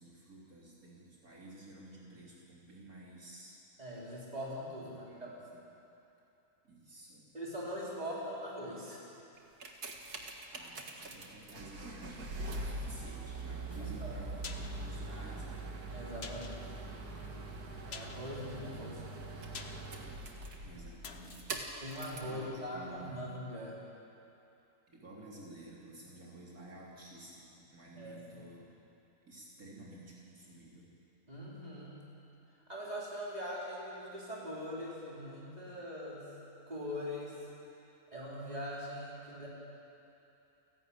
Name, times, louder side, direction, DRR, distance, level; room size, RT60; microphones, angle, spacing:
voice 1, 0.0-3.6 4.8-5.6 6.6-7.3 10.6-15.7 20.6-21.7 22.2-23.2 24.9-28.6 29.3-30.9, right 1 dB, 70° right, -5 dB, 3.7 m, -52 dB
voice 2, 3.8-5.3 7.3-9.0 13.8-14.1 15.9-16.6 17.8-19.1 21.8-23.8 28.0-28.5 31.3-32.0 32.7-36.3 36.7-37.3 38.1-39.5, equal, 25° right, -6 dB, 4.9 m, -42 dB
sound 1, 9.4-22.4 23.1-23.2, right 2 dB, 85° right, 2.4 m, -43 dB
sound 2, 14.4-22.9 23.2-23.3, left 5 dB, 45° left, 1.2 m, -51 dB
29.5 x 12.0 x 9.1 m, 2.9 s
omnidirectional pair, 1.6 m